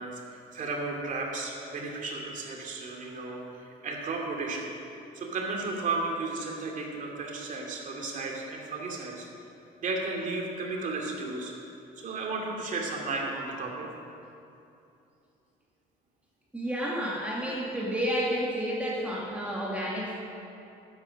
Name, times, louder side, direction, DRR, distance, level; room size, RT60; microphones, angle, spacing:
voice 1, 0.0-4.7 5.1-9.3 9.8-11.5 12.0-13.9, right 3 dB, 50° right, 0 dB, 2.5 m, -34 dB
voice 2, 16.5-20.1, equal, 10° right, -5 dB, 2.1 m, -30 dB
11.5 x 8.8 x 6.4 m, 2.7 s
cardioid pair, 110°, 17 cm